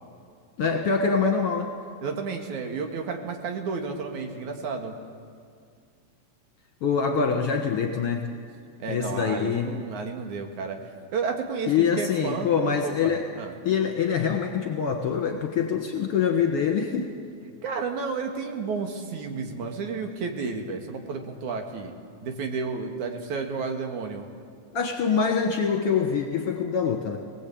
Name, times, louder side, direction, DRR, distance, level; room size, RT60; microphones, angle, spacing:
voice 1, 0.6-1.7 6.8-8.3 8.9-9.7 11.7-13.3 13.6-17.1 24.7-27.2, left 6 dB, 55° left, 3 dB, 2.2 m, -24 dB
voice 2, 2.0-4.9 8.8-10.8 11.1-13.5 17.6-21.9 22.2-24.3, right 5 dB, 80° right, 3 dB, 3.2 m, -32 dB
23.5 x 18.5 x 8.6 m, 2.2 s
omnidirectional pair, 3.4 m